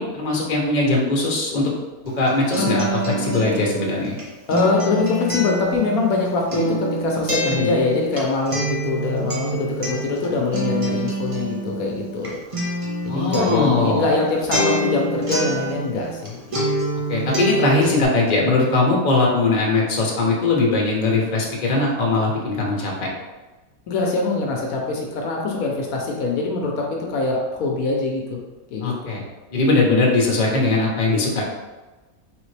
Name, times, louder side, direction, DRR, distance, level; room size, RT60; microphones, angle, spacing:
voice 1, 0.0-1.7 2.0-4.2 7.4-7.7 13.1-14.1 17.1-23.1 28.8-29.2 29.5-31.4, left 2 dB, 35° left, -2 dB, 0.9 m, -20 dB
Acoustic guitar, 2.0-16.3 16.5-18.0, equal, 30° right, 0.7 m, -26 dB
voice 2, 4.5-12.4 13.0-16.5 23.9-28.4 28.7-29.2, left 3 dB, 75° left, 0 dB, 1.1 m, -23 dB
3.9 x 3.5 x 3.2 m, 1.2 s
omnidirectional pair, 1.5 m